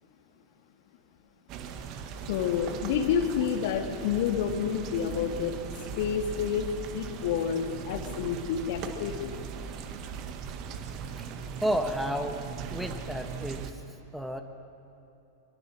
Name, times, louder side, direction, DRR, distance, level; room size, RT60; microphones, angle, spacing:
sound 1, 1.5-13.7, right 6 dB, 40° right, 1.7 m, -39 dB
voice 1, 2.3-5.6 6.0-6.7 6.9-9.3, left 8 dB, 55° left, 6 dB, 2.0 m, -29 dB
voice 2, 11.6-12.4 12.7-13.8 14.1-14.4, equal, ahead, 6 dB, 1.4 m, -31 dB
23.0 x 22.5 x 6.2 m, 2.9 s
figure-of-eight pair, 90°, 0 cm